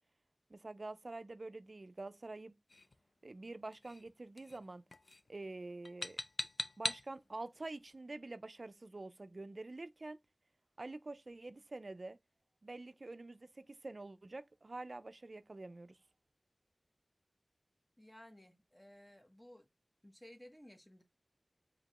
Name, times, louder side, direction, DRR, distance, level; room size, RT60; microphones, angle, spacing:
voice 1, 0.5-2.5 3.2-4.8 5.3-6.2 6.8-10.2 10.8-12.2 12.6-16.0, right 2 dB, 60° right, 0.4 m, -47 dB
sound 1, 2.7-2.9 3.7-4.1 4.4-4.7 4.9-5.3 5.8-7.1, left 2 dB, 75° left, 0.4 m, -41 dB
voice 2, 18.0-19.7 20.0-21.0, left 1 dB, 20° left, 0.9 m, -57 dB
5.1 x 2.8 x 3.0 m
wide cardioid pair, 60°, 0 cm